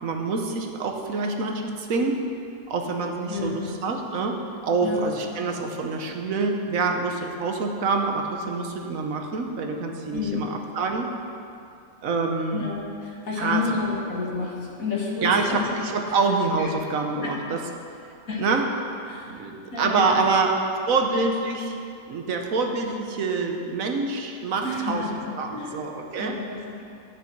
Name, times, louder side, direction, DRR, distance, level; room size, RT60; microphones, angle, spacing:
voice 1, 0.0-2.2 2.7-11.1 12.0-12.7 13.4-13.6 15.2-17.6 18.4-18.6 19.3-20.6 20.9-21.8 22.1-25.0 25.3-26.4, right 4 dB, 75° right, 3 dB, 1.3 m, -26 dB
voice 2, 3.3-3.6 4.8-5.1 10.1-10.5 12.5-15.7 16.1-16.2 16.6-16.7 17.2-17.3 18.3-18.5 19.1-19.3 19.7-20.2 24.6-25.1 25.5-25.7 26.2-26.8, left 4 dB, 75° left, -4 dB, 2.2 m, -30 dB
11.0 x 8.8 x 4.6 m, 2.6 s
omnidirectional pair, 1.5 m